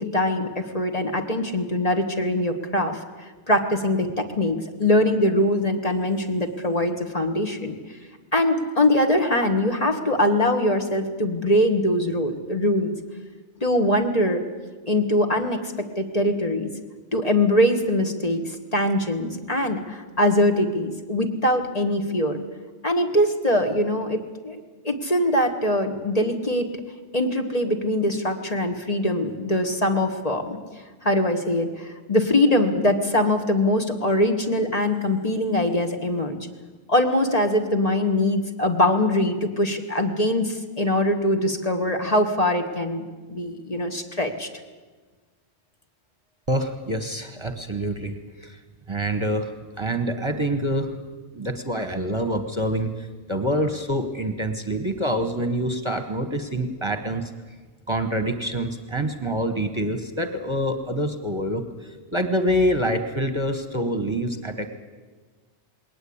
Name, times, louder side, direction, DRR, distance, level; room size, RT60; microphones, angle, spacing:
voice 1, 0.0-3.0 3.5-7.7 8.3-12.9 13.6-14.4 14.9-16.7 17.1-22.4 22.8-26.7 27.1-30.6 31.0-36.4 36.9-44.5, left 1 dB, 35° left, 4 dB, 1.5 m, -22 dB
voice 2, 46.5-48.1 48.4-48.6 48.9-49.5 49.8-50.9 51.3-57.3 57.9-64.7, equal, 25° right, 7 dB, 1.2 m, -26 dB
20.5 x 18.5 x 8.7 m, 1.4 s
omnidirectional pair, 1.2 m